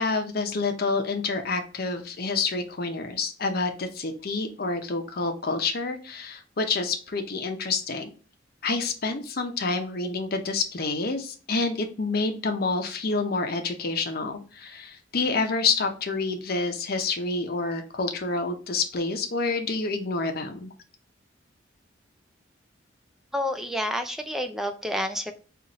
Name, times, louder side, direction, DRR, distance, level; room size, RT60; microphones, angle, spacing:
voice 1, 0.0-8.1 8.6-20.7, left 3 dB, 50° left, 5 dB, 0.7 m, -28 dB
voice 2, 23.3-25.3, equal, ahead, 6 dB, 0.4 m, -29 dB
4.0 x 2.5 x 2.9 m, 0.39 s
head